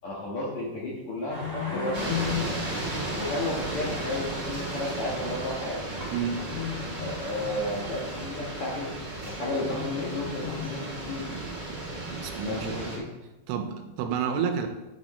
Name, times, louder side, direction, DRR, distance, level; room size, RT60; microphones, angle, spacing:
voice 1, 0.0-2.2 2.5-2.6 3.2-5.8 7.0-8.9 9.2-10.8 11.1-11.2 12.5-13.1, left 2 dB, 55° left, -5 dB, 2.3 m, -32 dB
sound 1, 1.3-3.6 6.4-7.7 9.5-11.4, left 11 dB, 85° left, 2.8 m, -36 dB
sound 2, 1.3-11.3, right 1 dB, 5° right, 1.8 m, -42 dB
sound 3, 1.9-13.0, right 2 dB, 40° right, 0.8 m, -35 dB
voice 2, 12.2-12.9 13.5-14.7, right 7 dB, 80° right, 5 dB, 2.9 m, -30 dB
10.0 x 6.3 x 4.3 m, 1.0 s
omnidirectional pair, 4.8 m